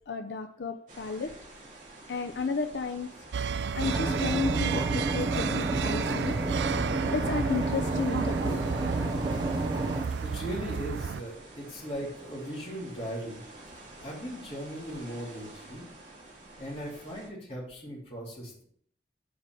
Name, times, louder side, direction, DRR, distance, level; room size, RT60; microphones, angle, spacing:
voice 1, 0.1-1.3 2.1-3.1 3.8-6.3 7.1-8.6, left 4 dB, 80° left, 7 dB, 0.5 m, -33 dB
sound 1, 0.9-17.3, right 2 dB, 45° right, 2.2 m, -49 dB
sound 2, 3.3-11.2, right 6 dB, 85° right, 0.4 m, -32 dB
sound 3, 3.8-10.0, right 2 dB, 25° right, 0.7 m, -30 dB
voice 2, 10.2-13.4 14.0-15.9 16.6-18.6, equal, 35° left, -4 dB, 2.9 m, -38 dB
7.2 x 4.8 x 5.9 m, 0.63 s
head